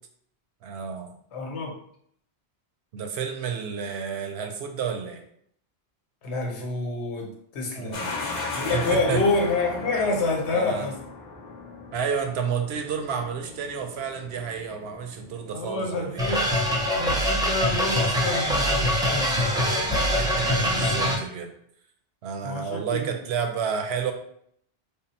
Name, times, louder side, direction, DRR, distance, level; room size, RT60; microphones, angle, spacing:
voice 1, 0.6-1.1 2.9-5.2 7.7-8.1 8.7-9.2 10.5-10.9 11.9-16.4 20.2-21.5 22.2-24.1, right 7 dB, 75° right, 5 dB, 0.8 m, -30 dB
voice 2, 1.3-1.7 6.2-8.0 8.5-11.0 15.5-16.5 16.7-19.4 22.4-23.2, left 3 dB, 80° left, 1 dB, 1.1 m, -28 dB
sound 1, 7.9-18.7, left 3 dB, 50° left, 0.6 m, -38 dB
sound 2, 16.2-21.2, equal, 5° right, 0.6 m, -23 dB
3.6 x 2.0 x 4.1 m, 0.67 s
omnidirectional pair, 1.1 m